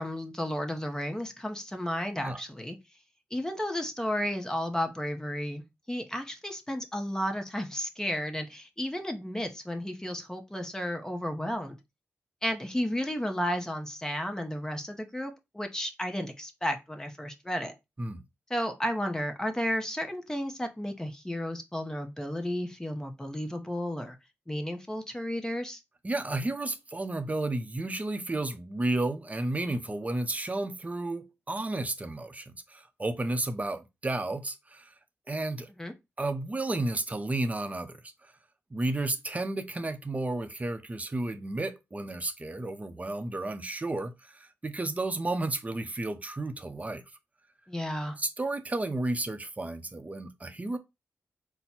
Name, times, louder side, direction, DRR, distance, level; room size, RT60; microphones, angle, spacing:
voice 1, 0.0-2.8 3.3-11.8 12.4-17.7 18.5-24.2 24.5-25.8 35.8-35.9 47.7-48.2, equal, 10° left, 0.8 m, -33 dB
voice 2, 26.0-34.9 35.3-35.7 36.2-38.3 38.7-47.0 48.2-50.8, right 2 dB, 30° right, 0.7 m, -32 dB
4.3 x 2.2 x 4.2 m
cardioid pair, 60°, 5 cm